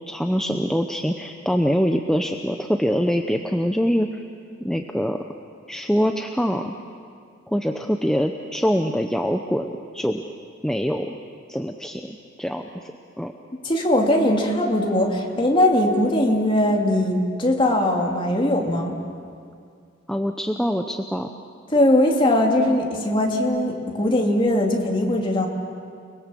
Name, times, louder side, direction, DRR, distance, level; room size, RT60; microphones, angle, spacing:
voice 1, 0.1-4.2 4.6-5.2 5.7-6.7 7.5-10.2 10.6-11.1 11.5-12.9 13.2-13.3 20.1-21.3, equal, 5° left, 4 dB, 0.7 m, -24 dB
voice 2, 13.6-19.0 21.7-25.5, left 1 dB, 25° left, 1 dB, 2.7 m, -20 dB
30.0 x 21.0 x 7.6 m, 2.3 s
head